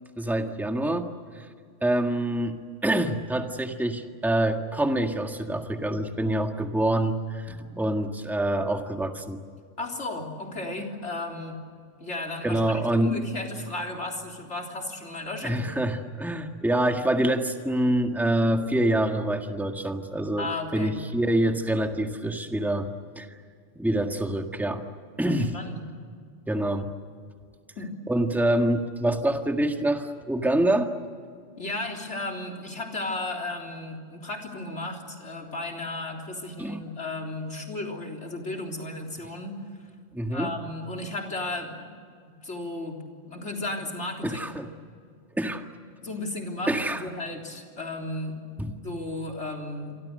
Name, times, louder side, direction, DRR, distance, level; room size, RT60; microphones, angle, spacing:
voice 1, 0.2-1.5 1.8-9.4 12.4-13.1 15.4-22.9 23.1-23.3 23.7-24.8 25.2-25.6 26.5-26.9 28.1-30.9 36.6-36.8 40.1-40.5 44.2-44.7 45.3-45.7 46.7-47.0 48.6-48.8, right 1 dB, ahead, 4 dB, 1.7 m, -26 dB
voice 2, 9.8-11.6 12.0-15.8 20.4-21.0 25.5-25.8 27.8-27.9 31.6-39.5 40.3-41.9 42.3-44.6 46.0-48.4 48.8-50.0, left 2 dB, 60° left, 1 dB, 4.0 m, -34 dB
28.5 x 25.0 x 6.7 m, 2.1 s
omnidirectional pair, 1.3 m